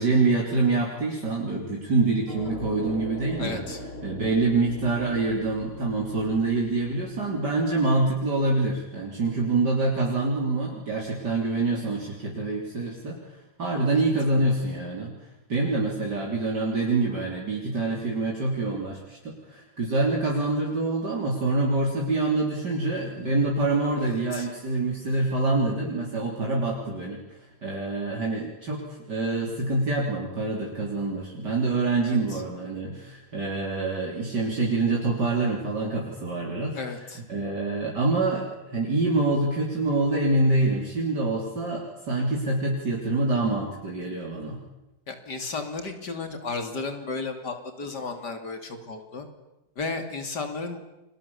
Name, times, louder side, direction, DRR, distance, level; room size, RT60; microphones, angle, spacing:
voice 1, 0.0-3.6 4.0-15.1 15.5-44.6, right 2 dB, 50° right, -1 dB, 4.0 m, -26 dB
sound 1, 2.3-8.1, left 1 dB, 30° left, 2.9 m, -40 dB
voice 2, 3.4-3.8 13.9-14.0 23.2-23.3 24.0-24.5 32.0-32.4 36.7-37.2 45.1-49.3 49.8-50.8, left 3 dB, 50° left, 7 dB, 3.4 m, -34 dB
29.5 x 24.0 x 7.1 m, 0.97 s
omnidirectional pair, 2.3 m